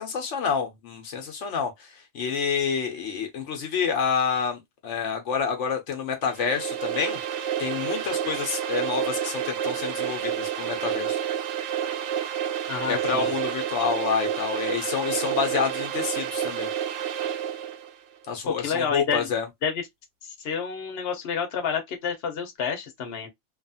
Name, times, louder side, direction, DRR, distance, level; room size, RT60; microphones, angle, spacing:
voice 1, 0.0-7.2 7.6-11.2 12.9-16.7 18.3-19.5, left 6 dB, 80° left, 1.1 m, -28 dB
sound 1, 6.2-17.9, right 9 dB, 80° right, 0.9 m, -29 dB
voice 2, 12.7-13.3 18.5-19.3 19.6-19.8 20.2-23.3, left 6 dB, 60° left, 1.0 m, -29 dB
2.9 x 2.4 x 2.6 m
omnidirectional pair, 1.2 m